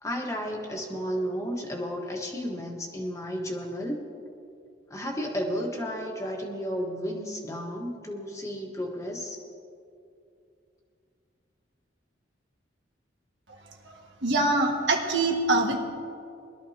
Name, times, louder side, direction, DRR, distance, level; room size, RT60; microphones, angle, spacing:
voice 1, 0.0-4.0 4.9-9.4, equal, 15° left, 0 dB, 1.3 m, -33 dB
voice 2, 14.2-15.8, right 2 dB, 75° right, 1 dB, 1.7 m, -24 dB
21.5 x 12.5 x 2.9 m, 2.5 s
head